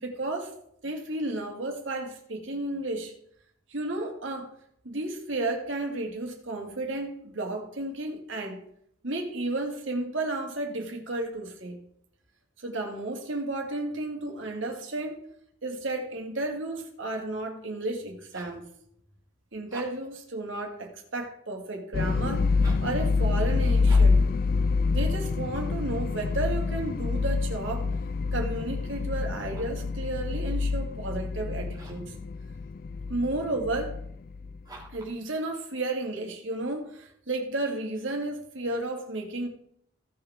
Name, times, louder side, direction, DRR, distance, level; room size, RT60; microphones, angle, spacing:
voice 1, 0.0-0.5 0.8-3.1 3.7-4.5 4.8-8.6 9.0-11.8 12.6-15.2 15.6-18.7 19.5-22.5 22.8-24.2 24.9-27.9 28.3-32.1 33.1-34.0 34.9-39.5, right 2 dB, 75° right, 2 dB, 2.2 m, -33 dB
sound 1, 18.0-18.7 19.6-20.2 22.5-23.0 23.8-24.3 29.3-29.9 31.7-32.1 34.6-35.2, right 2 dB, 20° right, 2.5 m, -47 dB
sound 2, 21.9-34.8, left 4 dB, 45° left, 0.3 m, -27 dB
16.0 x 6.8 x 3.6 m, 0.68 s
head